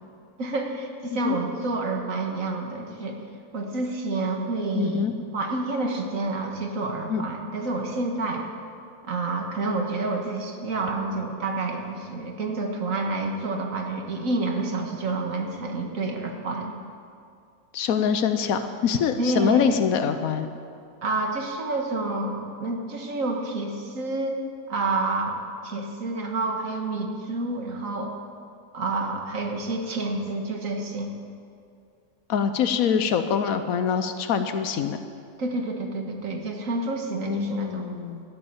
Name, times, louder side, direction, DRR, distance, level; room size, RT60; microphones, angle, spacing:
voice 1, 0.4-3.2 3.5-8.5 9.0-16.8 19.2-19.7 21.0-24.4 24.7-28.2 28.7-31.1 35.4-37.9, right 2 dB, 75° right, 2 dB, 2.0 m, -29 dB
voice 2, 4.7-5.1 7.1-7.2 17.7-20.5 32.3-35.0 37.3-38.2, left 7 dB, 85° left, 9 dB, 1.2 m, -24 dB
13.0 x 10.5 x 8.7 m, 2.4 s
omnidirectional pair, 1.4 m